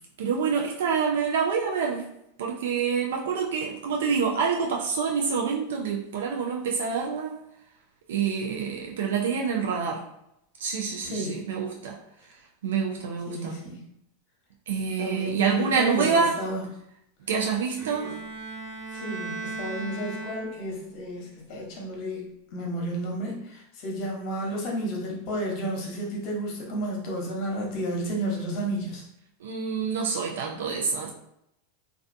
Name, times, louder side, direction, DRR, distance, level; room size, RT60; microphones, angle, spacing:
voice 1, 0.2-2.0 2.4-7.4 8.1-10.0 10.6-12.0 12.6-13.6 14.7-16.4 17.3-18.1 29.4-31.1, right 6 dB, 80° right, 0 dB, 0.4 m, -27 dB
voice 2, 11.0-11.4 13.3-13.8 15.0-16.6 18.0-18.1 18.9-22.2 22.5-29.0, right 1 dB, 50° left, -1 dB, 0.9 m, -32 dB
Bowed string instrument, 17.8-20.9, right 3 dB, 50° right, 0.9 m, -37 dB
2.3 x 2.3 x 2.5 m, 0.79 s
hypercardioid pair, 115°, 0 cm